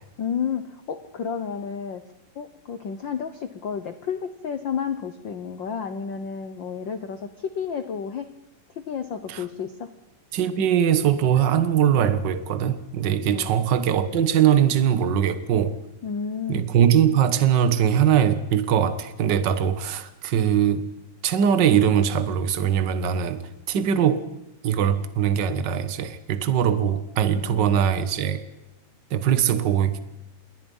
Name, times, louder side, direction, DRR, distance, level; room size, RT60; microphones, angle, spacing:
voice 1, 0.2-2.0 2.4-7.3 7.5-8.3 8.8-9.9 13.3-13.6 16.0-16.7 27.4-27.6, left 7 dB, 85° left, 1.0 m, -31 dB
voice 2, 10.3-15.8 16.5-20.9 21.2-23.4 23.7-24.3 24.6-28.4 29.1-30.0, right 9 dB, 55° right, 1.3 m, -21 dB
27.5 x 22.0 x 5.5 m
omnidirectional pair, 3.7 m